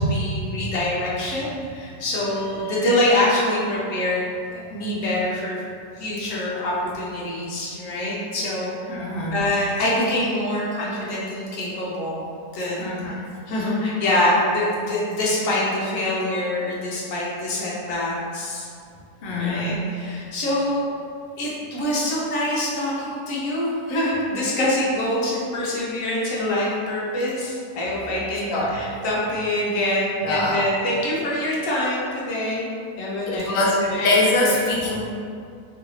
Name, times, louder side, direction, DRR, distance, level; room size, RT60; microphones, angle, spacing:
voice 1, 0.0-5.6 6.0-8.9 9.3-12.2 12.5-18.7 19.4-20.9 21.4-34.1, left 1 dB, 65° left, -6 dB, 1.0 m, -25 dB
voice 2, 8.9-9.4 12.8-13.1 19.2-19.7 28.5-28.8 30.2-30.6 33.3-35.0, left 2 dB, 80° left, -4 dB, 0.5 m, -23 dB
3.1 x 2.5 x 3.0 m, 2.3 s
omnidirectional pair, 1.6 m